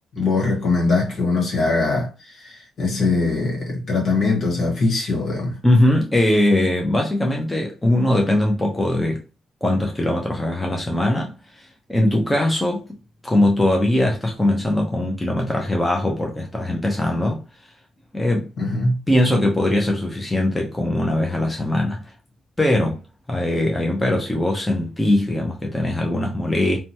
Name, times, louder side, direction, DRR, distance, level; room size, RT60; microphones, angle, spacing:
voice 1, 0.1-5.6 18.6-19.0, left 3 dB, 60° left, 1.3 m, -22 dB
voice 2, 5.6-9.2 9.6-12.9 13.2-17.4 18.1-18.5 19.1-22.0 22.6-23.0 23.3-26.8, left 1 dB, 10° left, 0.6 m, -21 dB
2.8 x 2.2 x 2.7 m
cardioid pair, 90°, 0 cm